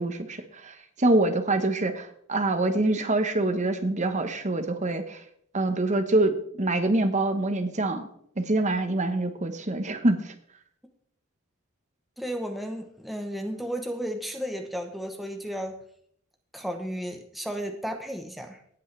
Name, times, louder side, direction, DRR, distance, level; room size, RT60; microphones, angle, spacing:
voice 1, 0.0-5.2 5.5-8.1 8.4-10.3, right 2 dB, 35° right, 8 dB, 1.2 m, -25 dB
voice 2, 12.2-15.7 16.5-18.6, equal, ahead, 4 dB, 1.0 m, -33 dB
18.0 x 8.4 x 3.4 m, 0.66 s
head